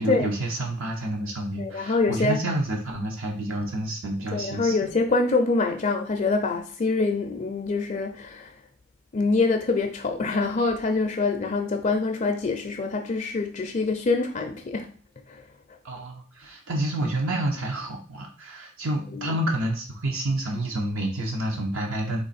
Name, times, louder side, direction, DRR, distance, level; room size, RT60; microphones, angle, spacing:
voice 1, 0.0-4.8 15.8-22.2, right 1 dB, 70° right, 0.9 m, -29 dB
voice 2, 1.6-2.4 4.3-8.5 9.1-14.9 15.3-15.4 19.1-19.4, left 3 dB, 35° left, 0.4 m, -25 dB
3.8 x 3.0 x 4.1 m
head